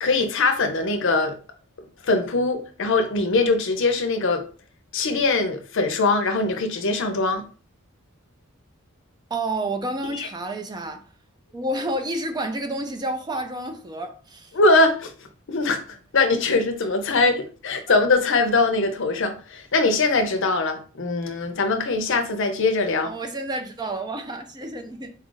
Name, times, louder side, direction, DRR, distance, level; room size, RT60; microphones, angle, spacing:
voice 1, 0.0-1.4 2.0-4.4 4.9-7.4 10.1-10.3 14.5-15.1 15.5-15.8 16.1-23.1, left 3 dB, 60° left, 0.6 m, -22 dB
voice 2, 9.3-11.0 11.5-14.5 23.0-25.1, right 1 dB, 20° right, 0.4 m, -30 dB
4.0 x 2.4 x 3.8 m
head